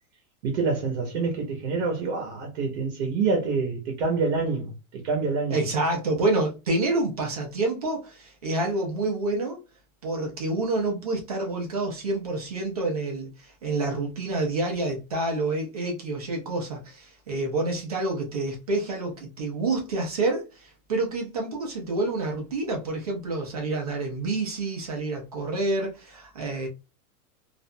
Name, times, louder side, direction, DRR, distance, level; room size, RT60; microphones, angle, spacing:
voice 1, 0.4-5.6, right 4 dB, 50° right, 0.7 m, -27 dB
voice 2, 5.5-9.6 10.0-26.7, right 2 dB, 30° right, 0.4 m, -28 dB
2.4 x 2.2 x 2.6 m
supercardioid pair, 180°, 44 cm